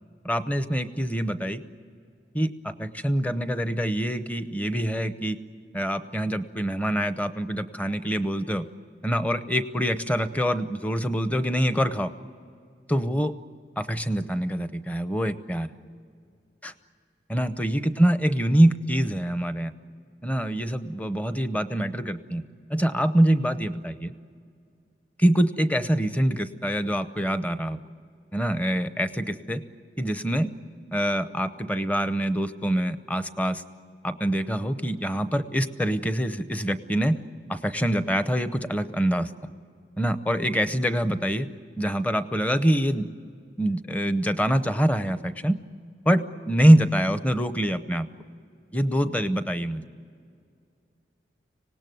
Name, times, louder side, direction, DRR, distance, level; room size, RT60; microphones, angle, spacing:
voice 1, 0.2-1.6 2.3-5.4 5.7-8.7 9.0-12.1 12.9-13.3 13.8-15.7 16.6-16.7 17.3-19.7 20.2-22.4 22.7-24.1 25.2-27.8 28.3-29.6 30.0-30.5 30.9-33.6 34.0-37.2 37.5-39.3 40.0-41.5 41.8-43.1 43.6-45.6 46.1-48.1 48.7-49.8, equal, 10° left, 11 dB, 0.7 m, -25 dB
25.5 x 18.5 x 9.3 m, 2.3 s
head